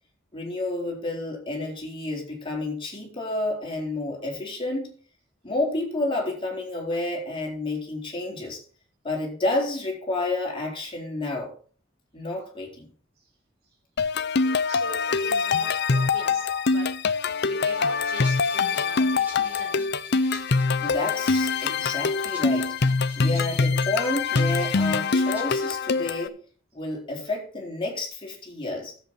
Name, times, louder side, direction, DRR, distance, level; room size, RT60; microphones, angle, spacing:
voice 1, 0.3-4.9 5.4-8.6 9.0-11.5 12.1-12.9 20.8-22.8 23.2-26.4 26.7-28.9, left 2 dB, 25° left, -1 dB, 4.2 m, -30 dB
sound 1, 14.0-26.3, left 4 dB, 60° left, 0.7 m, -24 dB
voice 2, 14.3-20.2 23.0-23.3 23.9-24.1 24.4-24.6, right 2 dB, 55° right, -2 dB, 4.1 m, -43 dB
Rattle (instrument), 17.6-25.7, equal, 10° right, 5.9 m, -47 dB
13.0 x 8.0 x 4.6 m, 0.43 s
head